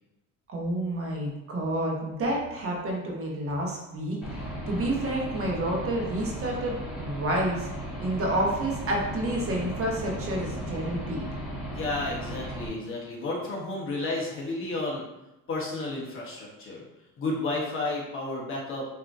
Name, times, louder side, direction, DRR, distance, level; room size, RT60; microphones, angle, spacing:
voice 1, 0.5-4.2 4.7-7.7 8.0-11.2, right 1 dB, 40° right, -1 dB, 1.1 m, -29 dB
Aircraft / Engine, 4.2-12.7, right 1 dB, 5° right, 1.3 m, -36 dB
voice 2, 11.7-15.1 15.5-16.9 17.2-18.8, left 2 dB, 40° left, -3 dB, 1.2 m, -32 dB
6.7 x 2.8 x 2.6 m, 0.93 s
cardioid pair, 150°, 33 cm